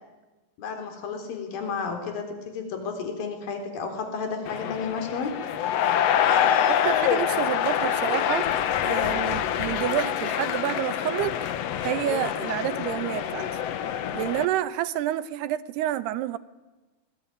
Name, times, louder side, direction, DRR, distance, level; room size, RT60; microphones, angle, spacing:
voice 1, 0.6-5.3, left 5 dB, 65° left, 6 dB, 5.3 m, -32 dB
sound 1, 4.5-14.5, left 9 dB, 85° left, 1.4 m, -26 dB
voice 2, 6.7-11.3 11.8-13.6 14.1-16.4, right 13 dB, 90° right, 13 dB, 3.1 m, -29 dB
25.0 x 21.0 x 9.9 m, 1.1 s
omnidirectional pair, 4.5 m